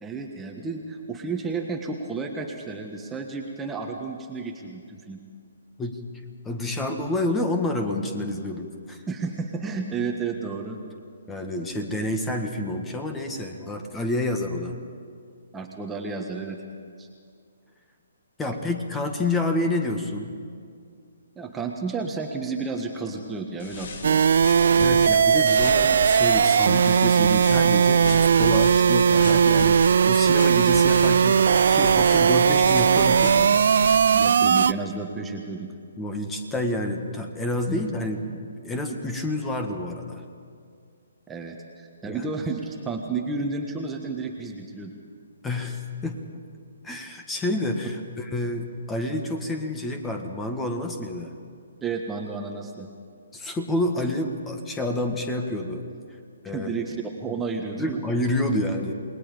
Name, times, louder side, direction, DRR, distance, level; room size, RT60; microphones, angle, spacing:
voice 1, 0.0-5.2 9.1-10.8 15.5-16.6 17.0-17.1 21.4-24.2 34.1-35.7 37.7-37.8 41.3-44.9 51.8-52.9 56.4-58.0, right 4 dB, 10° right, 2 dB, 1.5 m, -32 dB
voice 2, 6.4-9.0 11.3-14.8 18.4-20.3 24.8-31.4 31.7-33.7 34.0-34.2 36.0-40.2 42.1-42.3 45.4-46.2 46.8-51.3 53.3-55.8 56.4-56.8 57.3-57.4 57.8-58.9, left 1 dB, 10° left, 4 dB, 1.7 m, -29 dB
sound 1, 23.6-34.2, left 3 dB, 55° left, 2.5 m, -36 dB
sound 2, 24.0-34.7, right 7 dB, 60° right, 0.5 m, -18 dB
29.0 x 20.0 x 5.2 m, 2.2 s
figure-of-eight pair, 135°, 0 cm